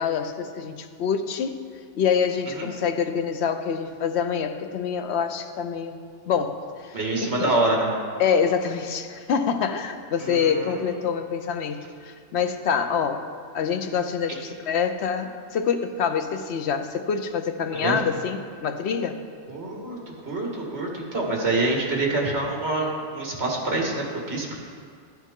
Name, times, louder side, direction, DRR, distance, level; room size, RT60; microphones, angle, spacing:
voice 1, 0.0-1.6 1.9-6.0 6.2-7.5 8.2-13.3 13.5-19.2, left 6 dB, 70° left, 8 dB, 0.9 m, -26 dB
voice 2, 6.9-7.9 10.2-10.8 14.3-14.4 17.7-18.0 19.5-20.0 20.2-24.6, right 2 dB, 60° right, -1 dB, 2.0 m, -26 dB
12.0 x 10.5 x 3.7 m, 2.1 s
omnidirectional pair, 1.2 m